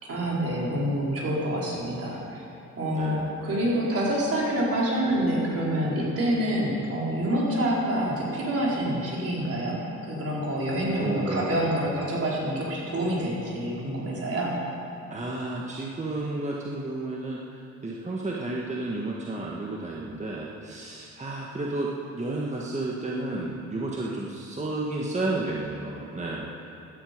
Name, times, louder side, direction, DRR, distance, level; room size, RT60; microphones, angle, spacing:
voice 1, 0.0-2.5 2.8-14.6, right 1 dB, 50° right, -4 dB, 4.2 m, -27 dB
voice 2, 2.9-3.4 11.0-11.6 15.1-21.9 22.1-26.6, right 2 dB, 25° right, -3 dB, 1.6 m, -32 dB
16.0 x 11.5 x 5.2 m, 2.6 s
cardioid pair, 90°, 30 cm